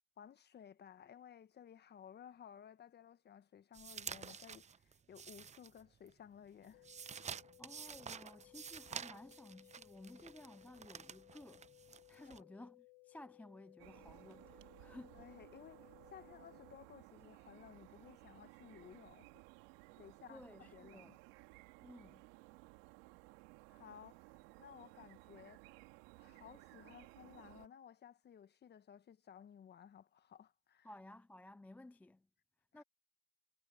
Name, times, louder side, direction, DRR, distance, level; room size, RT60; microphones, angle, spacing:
voice 1, 0.2-6.9 12.3-12.4 15.1-19.4 20.0-21.2 23.7-25.6 26.2-30.9 32.7-32.8, left 8 dB, 35° left, 1.4 m, -57 dB
sound 1, 3.7-6.1 6.5-12.4, right 7 dB, 25° right, 0.8 m, -50 dB
sound 2, 6.7-16.7, left 29 dB, 65° left, 1.5 m, -63 dB
voice 2, 7.6-11.7 12.1-15.2 20.3-21.2 21.8-22.3 30.8-32.3 32.7-32.8, left 2 dB, 5° left, 0.3 m, -56 dB
sound 3, 13.8-27.7, right 25 dB, 75° right, 2.5 m, -59 dB
supercardioid pair, 95°, 29 cm